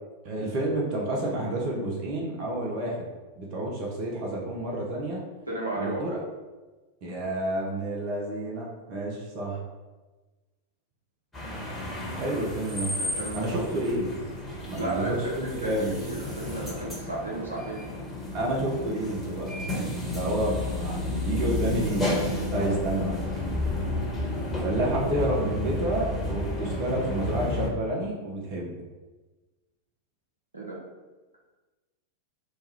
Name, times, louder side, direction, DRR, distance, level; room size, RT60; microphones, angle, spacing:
voice 1, 0.2-3.0 3.4-5.2 5.8-6.2 7.0-9.6 12.1-12.9 13.3-14.2 14.7-16.0 18.3-23.2 24.6-28.8, right 1 dB, 45° right, -3 dB, 0.6 m, -30 dB
voice 2, 5.5-6.0 13.0-13.6 14.8-17.9 22.5-23.2 30.5-30.8, right 2 dB, 80° right, -4 dB, 0.8 m, -34 dB
sound 1, 11.3-27.7, left 2 dB, 10° left, 1.2 m, -32 dB
3.1 x 2.3 x 4.2 m, 1.2 s
figure-of-eight pair, 90°, 0 cm